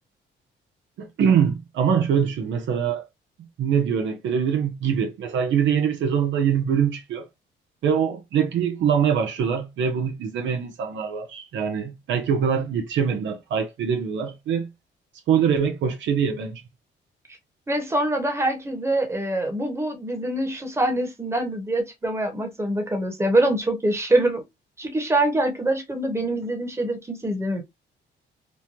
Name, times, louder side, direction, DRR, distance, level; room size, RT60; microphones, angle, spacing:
voice 1, 1.0-3.0 3.6-7.3 7.8-14.7 15.3-16.6, right 7 dB, 70° right, 0.7 m, -23 dB
voice 2, 17.7-24.4 24.8-27.6, right 1 dB, 15° right, 1.2 m, -24 dB
3.1 x 2.2 x 2.8 m
cardioid pair, 90°, 20 cm